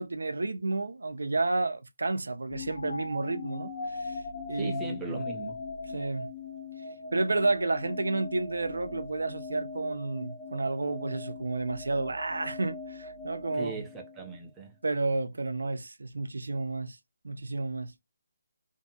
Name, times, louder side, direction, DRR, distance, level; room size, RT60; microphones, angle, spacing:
voice 1, 0.0-4.2 4.5-5.2 5.9-6.3 7.1-13.8 14.8-17.0 17.2-17.9, right 3 dB, 90° right, 0.4 m, -31 dB
sound 1, 2.5-14.6, left 4 dB, 30° left, 0.7 m, -40 dB
voice 2, 4.6-5.6 13.5-14.7, right 4 dB, 10° right, 0.4 m, -39 dB
2.6 x 2.3 x 2.6 m
hypercardioid pair, 165°, 0 cm